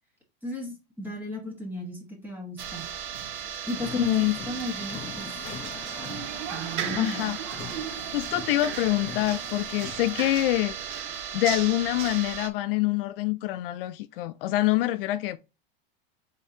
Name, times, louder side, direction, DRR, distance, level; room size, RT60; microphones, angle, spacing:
voice 1, 0.4-2.9 3.7-5.4 6.5-7.3, left 2 dB, 5° right, 1.3 m, -34 dB
sound 1, 2.6-12.5, right 8 dB, 60° right, 0.9 m, -35 dB
sound 2, 3.7-10.4, left 7 dB, 20° left, 0.6 m, -43 dB
voice 2, 3.9-4.4 7.0-7.4 8.1-11.0 11.3-15.4, left 16 dB, 70° left, 0.4 m, -26 dB
5.2 x 3.7 x 2.6 m
supercardioid pair, 135°, 29 cm